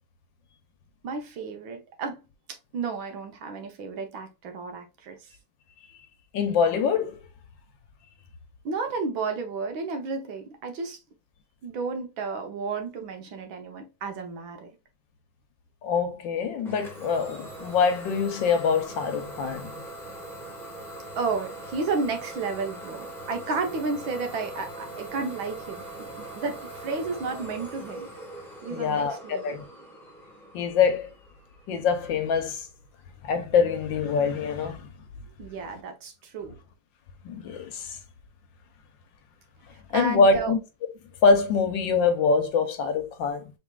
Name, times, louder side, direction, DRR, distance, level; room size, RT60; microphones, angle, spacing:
voice 1, 1.0-2.2 2.7-5.3 8.7-11.0 11.6-14.7 21.2-28.1 28.6-29.6 35.4-36.6 39.9-40.5, right 4 dB, 70° right, 1.6 m, -32 dB
voice 2, 6.3-7.2 15.8-19.7 28.7-29.6 30.5-31.1 31.7-32.7 33.2-34.9 37.2-38.0 39.9-40.6 41.2-43.5, left 5 dB, 70° left, 1.4 m, -24 dB
Idling / Domestic sounds home sounds, 16.6-32.2, right 1 dB, ahead, 1.0 m, -41 dB
4.7 x 3.5 x 2.3 m
omnidirectional pair, 2.3 m